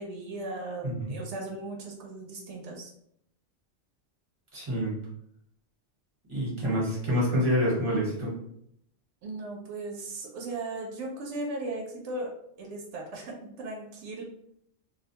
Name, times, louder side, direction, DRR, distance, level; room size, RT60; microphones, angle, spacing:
voice 1, 0.0-2.9 9.2-12.3 12.6-14.2, right 2 dB, 85° right, 0 dB, 0.9 m, -37 dB
voice 2, 4.5-4.9 6.3-8.3, equal, 25° right, -5 dB, 1.0 m, -27 dB
2.5 x 2.1 x 2.8 m, 0.72 s
omnidirectional pair, 1.2 m